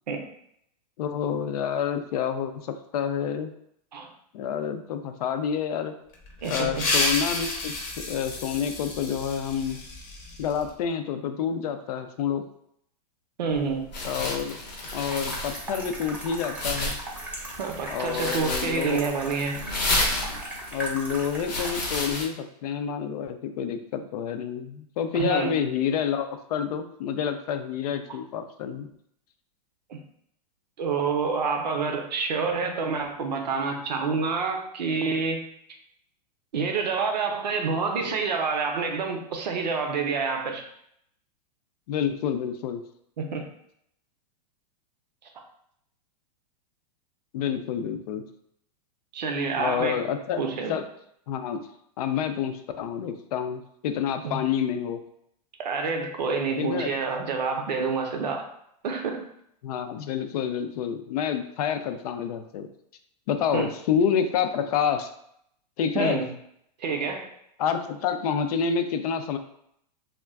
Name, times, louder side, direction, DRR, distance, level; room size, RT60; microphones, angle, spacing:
voice 1, 1.0-3.5 4.3-5.9 6.5-9.8 10.4-12.5 14.0-14.6 14.9-17.0 17.9-19.0 20.7-28.9 41.9-42.8 47.3-48.3 49.6-50.4 50.7-50.8 51.3-51.6 52.0-55.0 56.6-56.9 59.6-62.7 63.3-65.1 65.8-66.2 67.6-69.4, left 7 dB, 65° left, 7 dB, 0.4 m, -28 dB
sound 1, 6.1-10.7, left 2 dB, 40° left, 0.7 m, -30 dB
voice 2, 6.4-6.7 13.4-13.9 17.6-19.5 25.1-25.5 29.9-30.0 30.8-35.4 36.5-40.6 43.2-43.4 49.1-50.0 50.4-50.8 54.2-54.4 55.6-58.5 58.8-59.3 63.5-63.7 65.9-66.3 66.8-67.3, right 5 dB, 90° right, 3 dB, 0.6 m, -28 dB
sound 2, 13.5-22.3, left 2 dB, 90° left, 0.9 m, -32 dB
sound 3, 14.8-22.0, right 1 dB, 5° right, 0.6 m, -38 dB
2.3 x 2.1 x 3.5 m, 0.72 s
hypercardioid pair, 125°, 21 cm